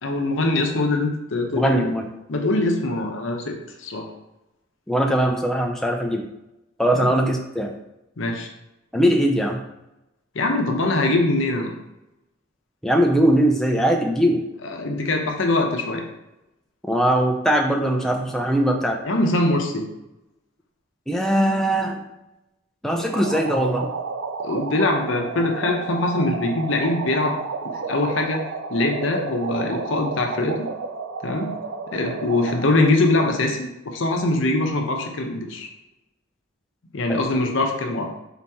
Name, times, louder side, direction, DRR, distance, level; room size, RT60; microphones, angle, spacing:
voice 1, 0.0-1.9 2.3-4.1 7.0-7.1 8.2-8.5 10.3-11.7 14.8-16.0 19.0-19.9 24.4-27.4 27.9-28.4 28.7-30.7 31.2-31.5 31.9-35.7 36.9-38.1, left 2 dB, 75° left, 2 dB, 0.7 m, -22 dB
voice 2, 1.5-2.1 4.9-6.3 6.8-7.7 8.9-9.6 12.8-14.4 16.9-19.0 21.1-22.0 22.8-23.9 37.1-37.2, right 1 dB, ahead, 2 dB, 0.4 m, -20 dB
sound 1, 22.9-32.9, right 4 dB, 85° right, 0.4 m, -31 dB
3.9 x 2.8 x 3.5 m, 0.93 s
head